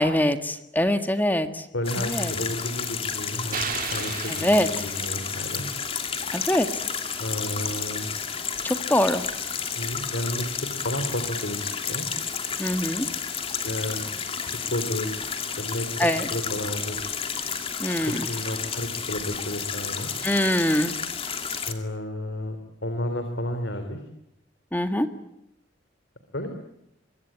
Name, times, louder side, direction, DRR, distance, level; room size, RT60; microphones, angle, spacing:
voice 1, 0.0-1.7 2.0-2.3 4.3-4.7 6.3-6.7 8.6-9.2 12.6-13.1 16.0-16.3 17.8-18.3 20.2-20.9 24.7-25.1, left 1 dB, 10° left, 8 dB, 1.7 m, -23 dB
voice 2, 1.7-3.6 3.9-5.7 7.2-8.1 9.7-12.1 13.6-14.0 14.5-15.1 15.6-16.0 16.3-17.0 18.1-20.1 21.7-22.6 22.8-24.0 26.3-26.5, left 1 dB, 70° left, 7 dB, 3.5 m, -31 dB
sound 1, 1.8-21.7, left 6 dB, 30° left, 2.5 m, -31 dB
sound 2, 3.5-5.7, right 7 dB, 45° right, 1.8 m, -35 dB
25.5 x 23.5 x 8.8 m, 0.82 s
head